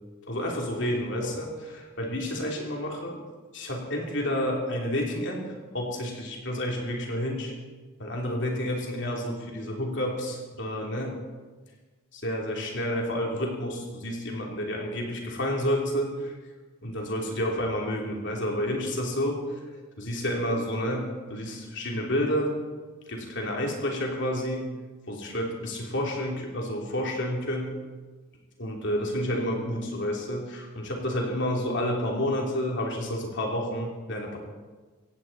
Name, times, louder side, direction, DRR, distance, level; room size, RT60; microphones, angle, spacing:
voice 1, 0.3-3.2 3.5-5.4 5.7-7.5 8.0-11.2 12.1-16.3 16.8-19.6 20.0-22.5 23.1-24.7 25.1-27.8 28.6-34.4, equal, 55° left, 0 dB, 3.2 m, -30 dB
16.5 x 16.5 x 4.2 m, 1.3 s
head